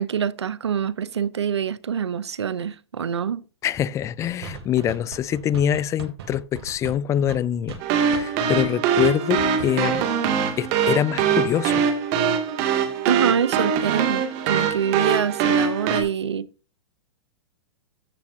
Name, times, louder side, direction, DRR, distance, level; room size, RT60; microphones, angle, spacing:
voice 1, 0.0-3.4 13.1-16.5, right 7 dB, 90° right, 0.8 m, -25 dB
voice 2, 3.6-10.1 10.6-11.8, left 10 dB, 20° left, 0.4 m, -24 dB
sound 1, 4.2-8.7 9.0-9.1 9.4-9.7 10.0-10.1, right 7 dB, 70° right, 2.7 m, -37 dB
sound 2, 7.8-16.0, right 7 dB, 45° right, 2.5 m, -23 dB
14.5 x 7.1 x 2.8 m
hypercardioid pair, 125°, 14 cm